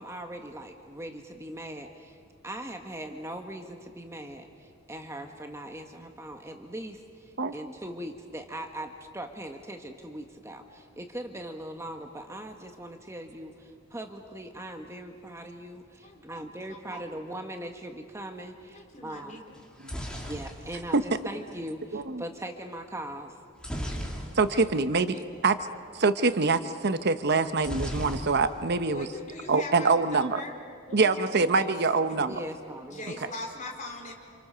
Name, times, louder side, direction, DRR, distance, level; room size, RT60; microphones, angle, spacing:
voice 1, 0.0-2.2 2.4-19.4 20.2-23.3 32.2-33.3, right 1 dB, 15° right, 4 dB, 1.4 m, -40 dB
voice 2, 16.0-17.1 18.7-19.6 24.5-25.4 28.9-30.6 30.9-31.7 32.9-34.1, left 2 dB, 40° left, 1 dB, 4.5 m, -42 dB
sound 1, 19.6-21.7 23.6-24.8 25.1-25.2 25.4-25.7 27.6-28.8 29.1-29.7, equal, 5° left, 3.2 m, -36 dB
voice 3, 24.4-25.2 25.4-25.6 25.9-29.1 29.5-30.4 30.9-32.3, right 4 dB, 55° right, 10 dB, 0.9 m, -24 dB
29.5 x 27.5 x 6.8 m, 2.3 s
head